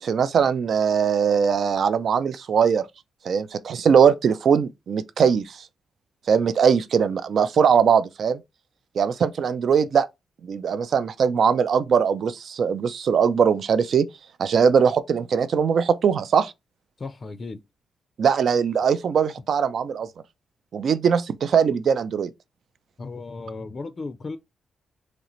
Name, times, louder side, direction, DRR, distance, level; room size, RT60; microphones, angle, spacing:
voice 1, 0.0-2.9 3.2-5.7 6.3-8.4 9.0-10.1 10.4-14.1 14.4-16.5 18.2-20.1 20.7-22.3, right 7 dB, 60° right, 0.4 m, -21 dB
voice 2, 17.0-17.6 23.0-24.4, left 3 dB, 35° left, 0.4 m, -35 dB
3.8 x 3.2 x 3.0 m
cardioid pair, 115°, 0 cm